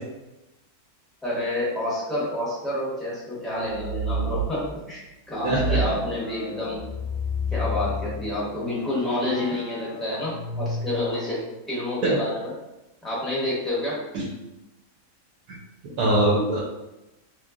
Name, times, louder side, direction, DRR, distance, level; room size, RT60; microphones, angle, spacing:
voice 1, 1.2-6.8 7.5-12.5 13.0-14.1, left 1 dB, ahead, -8 dB, 0.6 m, -29 dB
sound 1, 3.6-4.6 5.4-11.4, equal, 65° left, 0.9 m, -31 dB
voice 2, 5.4-5.8 12.0-12.2 14.1-14.2 15.5-15.6 15.8-16.6, right 1 dB, 75° right, -4 dB, 1.0 m, -22 dB
3.0 x 2.2 x 2.3 m, 0.97 s
omnidirectional pair, 1.6 m